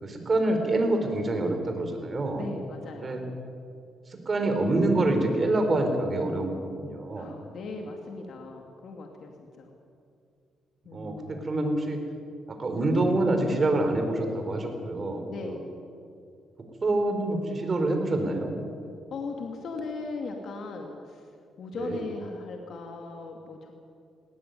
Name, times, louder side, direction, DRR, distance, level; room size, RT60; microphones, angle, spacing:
voice 1, 0.0-2.5 3.0-3.2 4.1-7.3 10.9-12.0 12.5-15.6 16.8-18.5 21.7-22.0, right 2 dB, 35° right, 5 dB, 4.5 m, -26 dB
voice 2, 2.4-3.3 7.2-9.7 10.8-11.5 15.3-15.6 19.1-21.2 21.6-23.7, left 3 dB, 65° left, 2 dB, 2.5 m, -38 dB
19.0 x 17.5 x 9.5 m, 2.4 s
cardioid pair, 90°, 0 cm